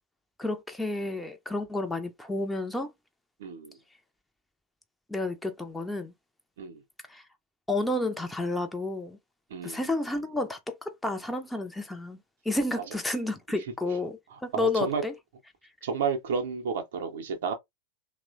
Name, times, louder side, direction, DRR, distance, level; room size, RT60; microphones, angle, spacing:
voice 1, 0.4-2.9 5.1-6.1 7.1-7.2 7.7-9.2 9.6-12.2 12.4-15.2, left 2 dB, 5° left, 0.5 m, -31 dB
voice 2, 3.4-3.8 6.6-6.8 9.5-9.8 14.5-15.0 15.8-17.5, right 6 dB, 60° right, 0.6 m, -31 dB
2.9 x 2.0 x 2.5 m
figure-of-eight pair, 90°, 0 cm